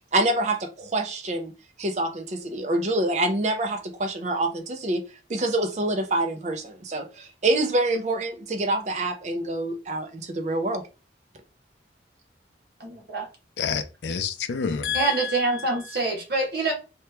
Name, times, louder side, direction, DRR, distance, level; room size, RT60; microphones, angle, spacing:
voice 1, 0.1-1.5 1.8-5.0 5.3-10.8, right 2 dB, 40° right, 0.5 m, -26 dB
voice 2, 12.8-13.3 14.9-16.7, right 3 dB, 60° right, 1.0 m, -25 dB
voice 3, 13.6-15.7, left 6 dB, 80° left, 0.4 m, -29 dB
3.0 x 2.3 x 3.2 m
head